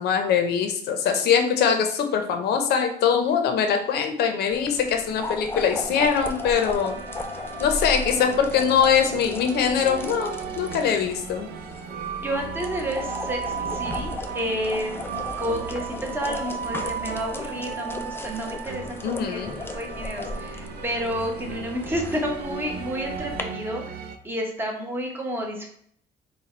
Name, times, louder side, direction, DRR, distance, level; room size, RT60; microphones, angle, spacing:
voice 1, 0.0-7.0 7.6-11.5 19.0-19.5, left 7 dB, 75° left, 5 dB, 0.8 m, -22 dB
sound 1, 4.5-23.4, left 2 dB, 15° left, 0.4 m, -36 dB
sound 2, 5.9-24.2, right 7 dB, 70° right, 0.5 m, -36 dB
voice 2, 12.2-15.0 15.4-19.4 19.7-25.7, equal, 15° right, 0 dB, 1.0 m, -30 dB
4.2 x 2.3 x 4.4 m, 0.64 s
cardioid pair, 130°, 17 cm